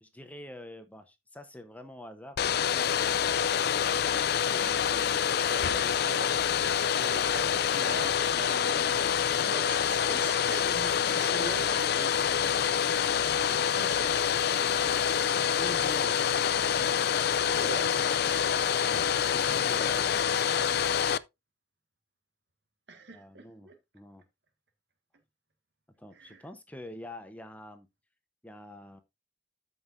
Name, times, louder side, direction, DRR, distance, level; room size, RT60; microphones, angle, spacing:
voice 1, 0.0-3.2 4.3-5.4 15.6-16.3 18.6-20.2 23.1-24.2 26.0-27.9 28.4-29.0, left 1 dB, 10° left, 0.8 m, -46 dB
Domestic sounds home sounds, 2.4-21.2, left 8 dB, 60° left, 0.4 m, -26 dB
voice 2, 5.4-6.3 7.0-9.0 9.3-12.8 13.2-14.2 17.6-17.9 22.9-23.8 26.1-26.5, right 3 dB, 75° right, 1.7 m, -42 dB
13.5 x 5.6 x 2.6 m
head